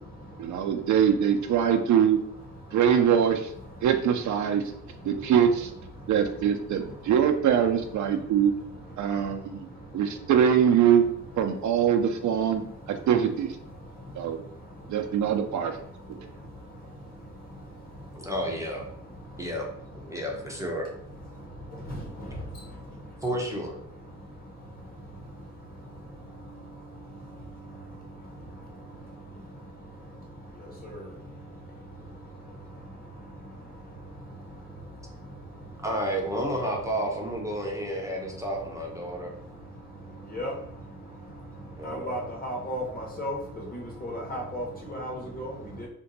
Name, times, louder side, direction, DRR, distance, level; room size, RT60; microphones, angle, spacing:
voice 1, 0.4-2.2 2.7-3.5 3.8-4.6 5.0-5.7 6.1-8.5 9.0-9.7 9.9-11.0 11.4-12.6 12.9-13.5 14.2-14.4 14.9-15.7, right 8 dB, 65° right, 6 dB, 0.4 m, -23 dB
voice 2, 18.1-18.9 19.4-19.7 19.9-20.9 23.2-23.8 35.8-39.3 41.8-42.3, equal, 10° right, -2 dB, 0.5 m, -31 dB
voice 3, 41.8-43.4 43.7-45.9, equal, 30° left, -1 dB, 0.9 m, -34 dB
2.6 x 2.2 x 3.9 m, 0.71 s
cardioid pair, 125°, 31 cm